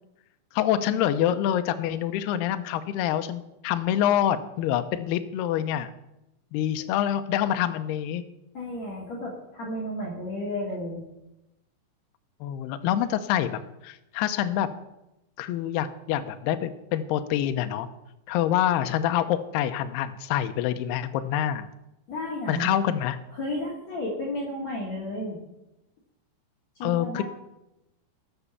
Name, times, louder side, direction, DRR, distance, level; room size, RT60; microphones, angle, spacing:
voice 1, 0.5-5.9 6.5-8.2 12.4-14.7 15.4-17.9 18.3-21.7 22.5-23.2 26.8-27.2, left 11 dB, 80° left, 8 dB, 2.5 m, -26 dB
voice 2, 8.5-11.0 22.1-22.7 23.3-25.4 26.8-27.2, left 1 dB, 45° left, -4 dB, 2.9 m, -32 dB
18.5 x 6.1 x 6.9 m, 0.92 s
omnidirectional pair, 5.0 m